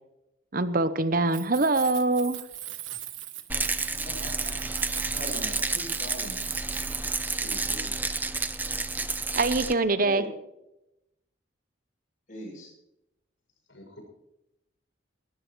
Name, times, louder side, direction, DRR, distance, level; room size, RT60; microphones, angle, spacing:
voice 1, 0.5-2.4 9.4-10.2, right 3 dB, 45° right, 12 dB, 0.8 m, -24 dB
Keys jangling, 1.2-7.3, right 13 dB, 80° right, 1.4 m, -40 dB
Rattle, 3.5-9.7, right 3 dB, 10° right, 0.5 m, -30 dB
voice 2, 3.9-4.6 5.1-6.5 10.0-10.3 12.3-12.7, equal, 40° left, 0 dB, 7.3 m, -40 dB
voice 3, 7.4-8.0 13.7-14.0, equal, 80° left, 2 dB, 6.5 m, -45 dB
19.5 x 19.5 x 3.1 m, 0.88 s
head